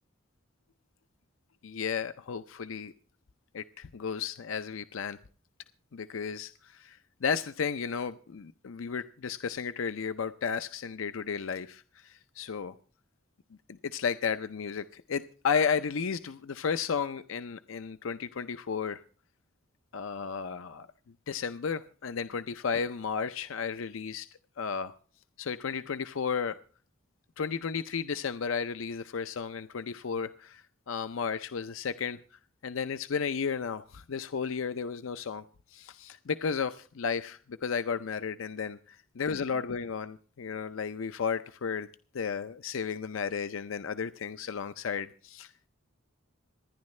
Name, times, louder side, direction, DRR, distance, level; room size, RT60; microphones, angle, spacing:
voice 1, 1.6-2.9 3.5-5.2 5.9-12.7 13.8-19.0 19.9-20.9 21.3-24.3 24.6-24.9 25.4-26.6 27.4-32.2 32.6-35.4 35.7-41.9 42.1-45.5, left 6 dB, 75° left, 11 dB, 0.5 m, -33 dB
26.5 x 10.5 x 3.2 m, 0.43 s
head